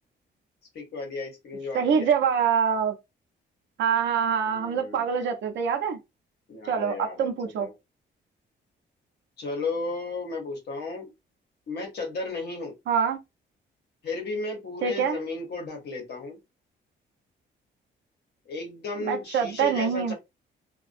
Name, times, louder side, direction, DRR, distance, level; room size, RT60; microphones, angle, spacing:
voice 1, 0.7-2.1 4.4-5.1 6.5-7.7 9.4-11.1 11.7-12.7 14.0-16.4 18.5-20.1, left 3 dB, 60° left, 0.9 m, -34 dB
voice 2, 1.7-2.9 3.8-6.0 6.7-7.7 12.9-13.2 14.8-15.2 19.0-20.1, right 7 dB, 70° right, 0.5 m, -25 dB
2.4 x 2.1 x 2.5 m
cardioid pair, 150°, 19 cm